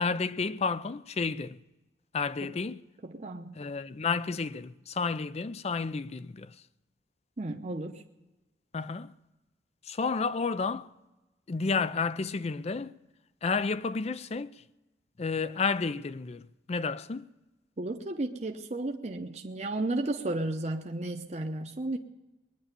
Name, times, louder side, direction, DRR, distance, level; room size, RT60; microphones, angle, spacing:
voice 1, 0.0-1.6 2.1-2.8 3.6-6.6 8.7-9.2 9.8-10.9 11.5-13.0 13.4-14.6 15.2-17.3, left 4 dB, 35° left, 0.5 m, -31 dB
voice 2, 3.0-3.6 7.4-8.0 17.8-22.0, right 2 dB, 40° right, 0.8 m, -33 dB
20.5 x 10.0 x 6.7 m
head